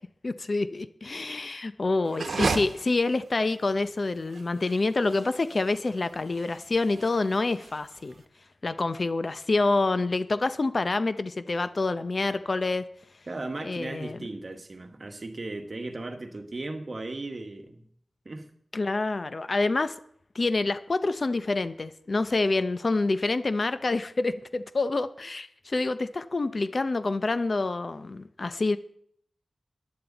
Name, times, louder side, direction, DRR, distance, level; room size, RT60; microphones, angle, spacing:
voice 1, 0.2-8.1 8.6-12.8 13.6-14.2 18.7-19.9 20.3-28.8, left 3 dB, 45° left, 0.6 m, -27 dB
sound 1, 2.1-8.2, right 4 dB, 80° right, 1.0 m, -35 dB
voice 2, 13.3-17.8 18.2-18.5, right 2 dB, 40° right, 1.4 m, -36 dB
15.0 x 10.5 x 4.0 m
wide cardioid pair, 120°, 0 cm